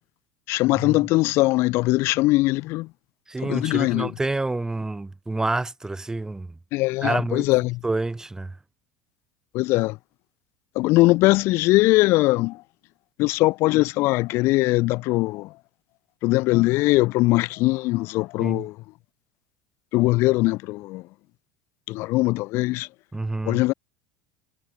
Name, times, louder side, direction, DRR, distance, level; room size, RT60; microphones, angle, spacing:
voice 1, 0.5-2.9 3.4-4.1 6.7-7.8 9.5-10.0 10.8-12.6 13.2-15.5 16.2-18.7 19.9-21.0 21.9-22.9 23.5-23.7, left 20 dB, 55° left, 0.5 m, -21 dB
voice 2, 3.3-6.5 7.0-7.5 7.8-8.5 18.4-18.6 23.1-23.6, right 2 dB, 10° right, 1.2 m, -28 dB
hypercardioid pair, 75°, 5 cm